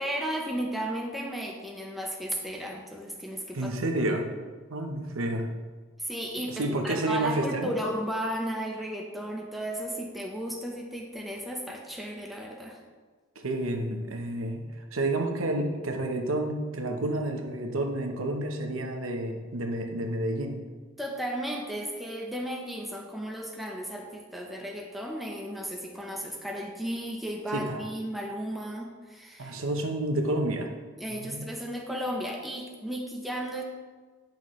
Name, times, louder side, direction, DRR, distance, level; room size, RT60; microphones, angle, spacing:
voice 1, 0.0-3.7 6.0-6.5 6.8-12.8 21.0-29.5 31.0-33.6, right 1 dB, ahead, -1 dB, 0.8 m, -34 dB
voice 2, 3.5-4.3 4.7-5.5 6.5-7.7 13.4-14.7 14.9-20.6 27.5-27.8 29.4-30.7 31.1-31.5, right 1 dB, 80° right, 3 dB, 0.9 m, -30 dB
9.8 x 5.8 x 3.1 m, 1.4 s
head